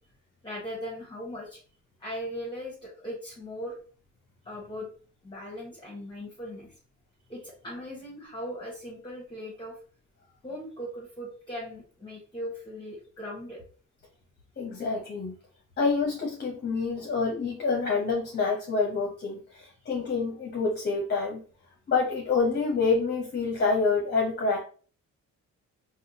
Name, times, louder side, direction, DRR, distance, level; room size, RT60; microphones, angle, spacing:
voice 1, 0.4-1.6 2.0-3.8 4.4-4.9 5.2-6.7 7.3-9.8 10.4-13.6, equal, 15° left, -4 dB, 1.1 m, -39 dB
voice 2, 14.6-15.3 15.8-21.4 21.9-24.6, left 4 dB, 35° left, -1 dB, 0.8 m, -27 dB
3.4 x 2.2 x 2.8 m, 0.41 s
cardioid pair, 90°, 30 cm